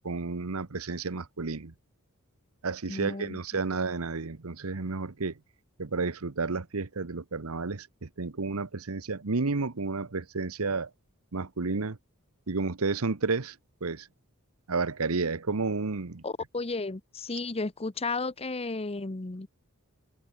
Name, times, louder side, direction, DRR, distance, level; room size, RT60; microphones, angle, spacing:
voice 1, 0.0-1.7 2.6-5.4 5.8-10.9 11.3-12.0 12.5-13.6 13.8-14.1 14.7-16.2, right 3 dB, 85° right, 1.1 m, -31 dB
voice 2, 2.9-3.6 16.2-19.5, left 3 dB, 30° left, 0.9 m, -33 dB
head